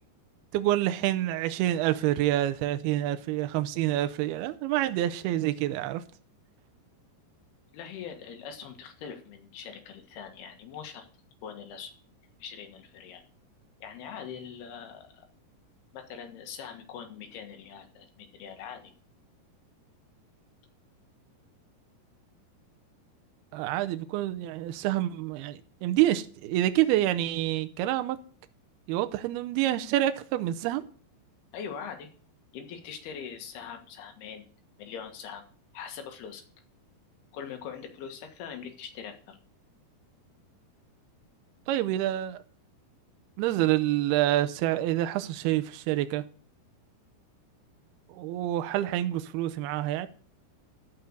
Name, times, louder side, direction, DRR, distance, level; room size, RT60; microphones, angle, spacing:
voice 1, 0.5-6.0 23.5-28.2 28.9-30.8 41.7-42.4 43.4-46.2 48.1-50.1, right 14 dB, 80° right, 2.6 m, -27 dB
voice 2, 7.7-11.1 11.4-12.0 12.4-13.2 13.8-15.3 15.9-18.9 31.5-32.1 32.5-34.5 34.8-35.5 35.7-36.4 37.3-39.4, left 7 dB, 70° left, 3.5 m, -42 dB
14.0 x 5.5 x 6.6 m
omnidirectional pair, 4.8 m